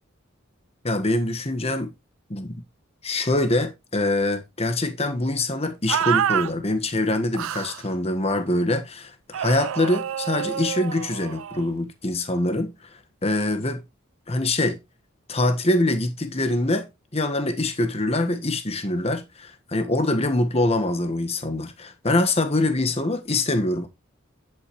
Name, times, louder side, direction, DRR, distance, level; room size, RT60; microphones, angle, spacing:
voice 1, 0.8-1.9 2.3-2.6 3.0-12.7 13.2-13.8 14.3-14.8 15.3-23.9, left 2 dB, 30° left, 1.5 m, -24 dB
sound 1, 5.9-6.5 7.3-7.8 9.3-11.7, right 9 dB, 90° right, 0.4 m, -27 dB
9.6 x 8.5 x 3.1 m
head